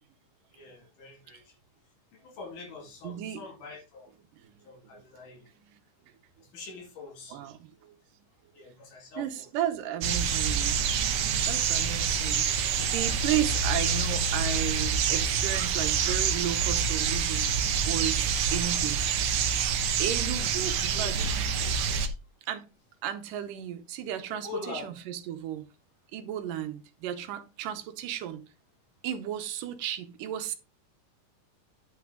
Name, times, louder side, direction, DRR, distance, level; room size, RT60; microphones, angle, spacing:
voice 1, 0.5-1.6 2.1-4.1 4.6-5.5 6.4-7.4 8.6-9.5 20.8-21.3 21.5-22.2 24.3-24.9, left 4 dB, 75° left, 4.0 m, -44 dB
voice 2, 3.0-3.4 4.3-4.5 4.9-5.0 5.7-5.8 7.3-8.0 9.2-10.8 11.5-17.5 17.8-19.0 20.0-21.2 22.4-22.7 23.0-25.6 26.1-28.4 29.0-30.6, right 11 dB, 85° right, 2.6 m, -34 dB
sound 1, 10.0-22.1, right 6 dB, 65° right, 1.4 m, -27 dB
10.0 x 6.0 x 3.8 m
omnidirectional pair, 3.8 m